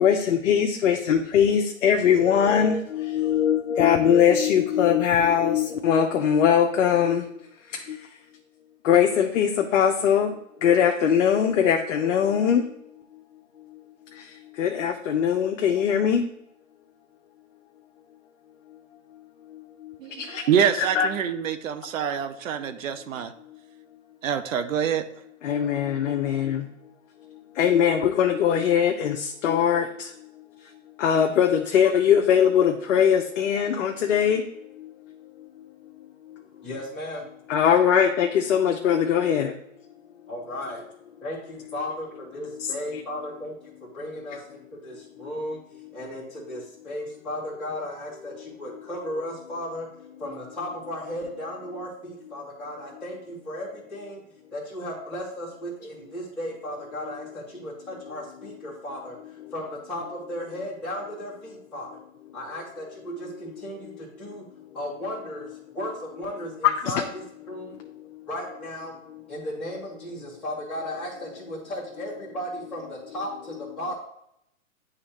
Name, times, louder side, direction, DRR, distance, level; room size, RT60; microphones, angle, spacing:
voice 1, 0.0-7.2 7.7-8.1 8.8-10.3 10.6-12.8 13.7-13.8 14.1-16.3 19.5-20.5 20.8-21.1 23.5-23.6 25.4-26.7 27.3-30.3 31.0-34.5 34.7-35.1 35.4-35.5 36.3-36.4 37.5-39.5 42.6-43.0 45.2-45.3 59.4-59.5 64.3-64.4 66.6-66.9 67.8-68.2, left 8 dB, 60° left, 3 dB, 0.7 m, -22 dB
voice 2, 20.5-21.5 21.9-22.6 22.8-23.2 24.2-25.0, right 8 dB, 65° right, 9 dB, 0.7 m, -24 dB
voice 3, 36.6-37.2 40.3-40.8 41.2-45.6 45.9-49.9 50.2-54.2 54.5-59.2 59.5-61.9 62.3-64.4 64.7-67.8 68.3-68.9 69.3-74.0, left 1 dB, ahead, -11 dB, 1.7 m, -35 dB
9.8 x 3.3 x 2.9 m, 0.77 s
hypercardioid pair, 130°, 42 cm